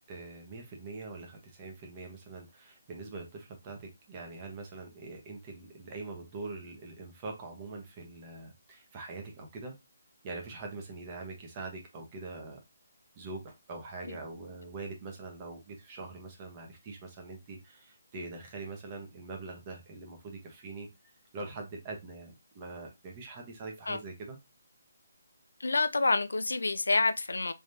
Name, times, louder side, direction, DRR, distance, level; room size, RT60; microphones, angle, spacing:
voice 1, 0.1-9.8 10.2-12.6 13.2-20.9 21.3-24.4, right 3 dB, 25° right, 1.1 m, -43 dB
voice 2, 25.6-27.5, left 3 dB, 90° left, 0.4 m, -27 dB
3.5 x 3.2 x 2.7 m
hypercardioid pair, 160°, 0 cm